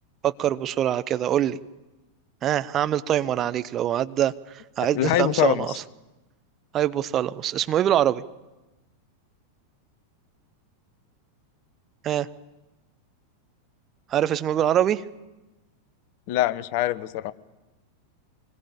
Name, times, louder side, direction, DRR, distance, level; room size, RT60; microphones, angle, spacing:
voice 1, 0.2-1.6 2.4-5.7 6.7-8.2 12.0-12.3 14.1-15.0, right 11 dB, 30° right, 13 dB, 0.8 m, -24 dB
voice 2, 4.8-5.8 16.3-17.3, left 13 dB, 45° left, 17 dB, 0.9 m, -24 dB
25.5 x 21.0 x 8.7 m, 1.1 s
figure-of-eight pair, 90°, 0 cm